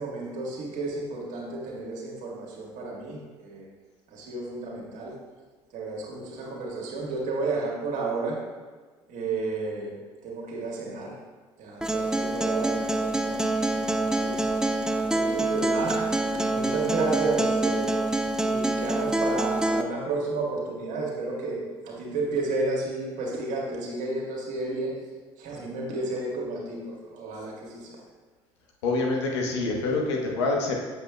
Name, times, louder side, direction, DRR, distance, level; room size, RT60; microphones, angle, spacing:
voice 1, 0.0-3.7 4.1-5.2 5.7-8.4 9.1-10.0 10.2-11.1 11.6-14.5 15.0-16.1 16.3-18.0 18.4-25.0 25.4-28.0, right 3 dB, 60° right, -2 dB, 1.8 m, -32 dB
Acoustic guitar, 11.8-19.8, right 2 dB, 5° right, 0.5 m, -26 dB
voice 2, 28.8-30.7, left 3 dB, 80° left, 0 dB, 1.0 m, -26 dB
7.8 x 6.7 x 2.3 m, 1.4 s
hypercardioid pair, 55°, 15 cm